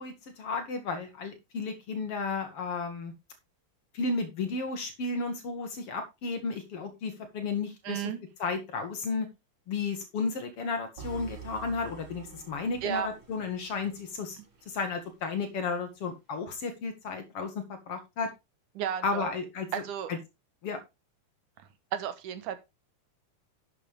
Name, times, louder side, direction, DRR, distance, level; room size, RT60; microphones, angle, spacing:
voice 1, 0.0-3.1 3.9-8.0 8.4-9.3 9.7-14.4 14.7-18.3 19.0-19.7 20.1-20.2 20.6-20.8, left 4 dB, 55° left, 7 dB, 2.1 m, -33 dB
voice 2, 7.8-8.2 12.8-13.1 18.8-19.3 19.7-20.1 21.9-22.6, right 10 dB, 75° right, 11 dB, 2.5 m, -33 dB
sound 1, 11.0-15.1, right 7 dB, 55° right, 4.4 m, -47 dB
11.5 x 7.3 x 3.4 m, 0.24 s
omnidirectional pair, 3.7 m